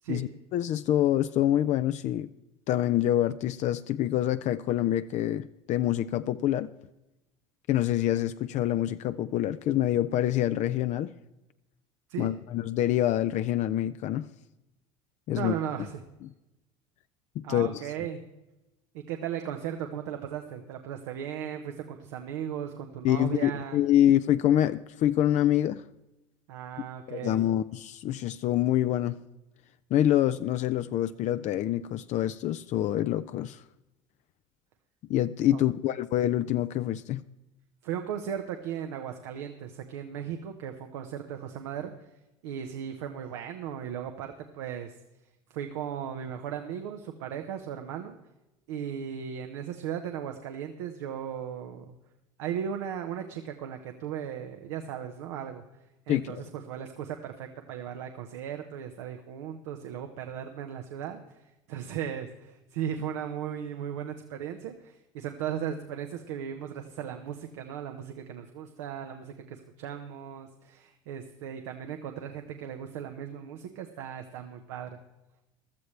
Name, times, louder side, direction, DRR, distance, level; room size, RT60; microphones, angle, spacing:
voice 1, 0.1-2.3 2.7-6.7 7.7-11.1 12.2-14.3 15.3-15.5 17.4-17.8 23.0-25.8 27.1-29.2 29.9-33.6 35.1-37.2 56.1-56.4, left 12 dB, 55° left, 0.5 m, -26 dB
voice 2, 15.3-15.9 17.4-18.2 18.9-23.8 26.5-27.4 35.5-35.6 37.8-41.9 42.4-44.9 45.5-48.1 48.7-51.9 52.4-55.6 56.1-61.4 61.7-75.0, right 9 dB, 85° right, 1.1 m, -37 dB
16.0 x 12.5 x 3.3 m
supercardioid pair, 90°, 15 cm